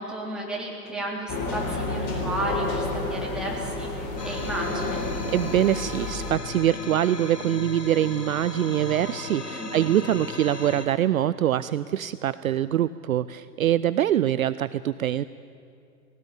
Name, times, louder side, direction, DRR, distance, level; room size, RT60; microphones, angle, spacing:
voice 1, 0.0-5.0 9.5-9.9, right 1 dB, ahead, -3 dB, 3.5 m, -33 dB
sound 1, 1.3-6.3, left 2 dB, 30° left, 4.3 m, -30 dB
sound 2, 4.2-10.9, left 4 dB, 75° left, 2.7 m, -36 dB
voice 2, 5.2-15.2, right 11 dB, 60° right, 16 dB, 0.5 m, -24 dB
19.0 x 18.0 x 8.7 m, 2.5 s
figure-of-eight pair, 115°, 49 cm